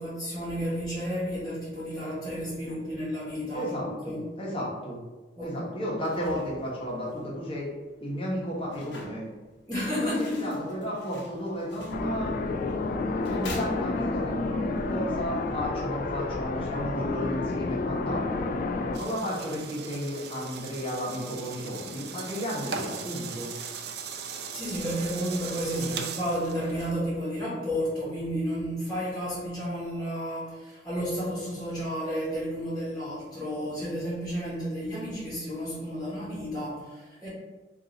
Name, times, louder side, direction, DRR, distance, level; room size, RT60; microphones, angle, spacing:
voice 1, 0.0-4.2 5.4-5.6 9.7-10.6 24.5-37.3, equal, 5° left, -11 dB, 1.4 m, -32 dB
voice 2, 3.5-5.0 5.4-7.7 8.0-9.3 10.0-12.4 13.3-18.5 18.9-23.5 25.7-25.9, equal, 30° left, -4 dB, 1.1 m, -33 dB
sound 1, 5.9-14.4, left 1 dB, 70° left, 0.8 m, -47 dB
sound 2, 11.9-19.0, left 3 dB, 50° left, 0.3 m, -30 dB
sound 3, 18.9-26.9, right 6 dB, 65° right, 0.4 m, -38 dB
3.8 x 2.7 x 3.9 m, 1.2 s
head